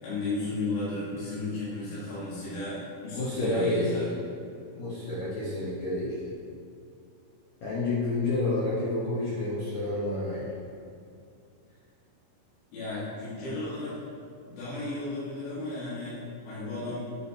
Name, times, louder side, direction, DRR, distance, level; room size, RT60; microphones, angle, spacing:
voice 1, 0.0-4.1 12.7-14.0 14.4-17.1, left 2 dB, 90° left, -10 dB, 4.0 m, -34 dB
voice 2, 3.1-4.0 4.7-6.2 7.6-10.5, left 2 dB, 70° left, -8 dB, 1.7 m, -29 dB
9.4 x 8.6 x 2.8 m, 2.4 s
omnidirectional pair, 4.8 m